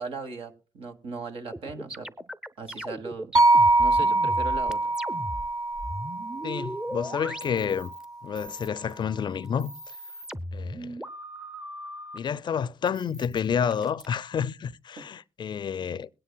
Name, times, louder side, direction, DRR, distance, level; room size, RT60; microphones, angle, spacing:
voice 1, 0.0-2.1 2.6-3.3 3.8-4.9 15.0-15.1, right 4 dB, 70° right, 1.4 m, -38 dB
sound 1, 1.5-8.1 8.4-9.0 9.5-12.2 12.9-14.1, equal, 5° right, 0.7 m, -38 dB
sound 2, 3.3-7.6, right 2 dB, 40° right, 0.7 m, -24 dB
voice 2, 6.4-7.9 8.2-9.7 10.5-11.0 12.1-16.1, left 7 dB, 50° left, 0.5 m, -29 dB
21.5 x 9.7 x 2.2 m
supercardioid pair, 55°, 10 cm